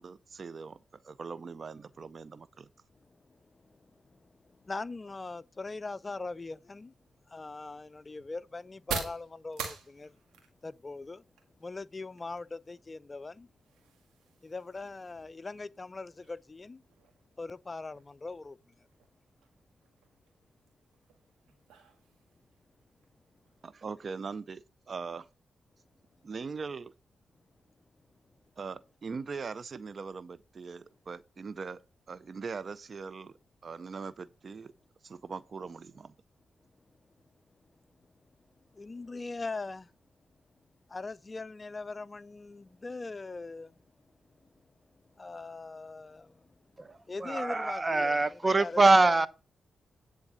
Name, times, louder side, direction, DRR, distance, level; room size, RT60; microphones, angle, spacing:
voice 1, 0.0-2.7 23.6-25.3 26.2-26.9 28.6-31.8 32.1-33.3 33.6-34.7 35.0-36.1, right 5 dB, 55° right, 0.4 m, -41 dB
voice 2, 4.6-6.9 7.3-10.2 10.6-11.2 11.6-13.5 14.4-16.8 17.4-18.6 38.7-39.9 40.9-43.7 45.2-46.4 47.1-49.3, left 3 dB, 35° left, 0.3 m, -41 dB
sound 1, 6.8-24.4, right 6 dB, 85° right, 1.7 m, -47 dB
voice 3, 46.8-49.3, right 3 dB, 35° right, 0.8 m, -24 dB
9.7 x 3.8 x 6.9 m
supercardioid pair, 45°, 0 cm